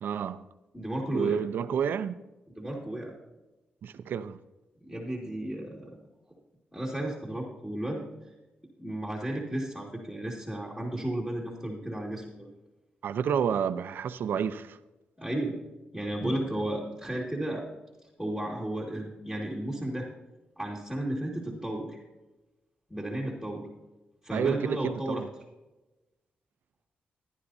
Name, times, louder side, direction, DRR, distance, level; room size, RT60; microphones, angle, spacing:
voice 1, 0.0-0.4 1.1-2.2 3.8-4.4 13.0-14.8 24.3-25.3, right 7 dB, 75° right, 0.6 m, -30 dB
voice 2, 0.7-1.4 2.6-3.1 4.8-5.9 6.7-8.0 8.8-12.5 15.2-15.7 15.9-17.7 18.2-20.1 20.6-22.0 22.9-23.7 24.2-25.2, right 1 dB, 5° left, 2.1 m, -33 dB
15.0 x 11.0 x 2.7 m
cardioid pair, 105°, 3 cm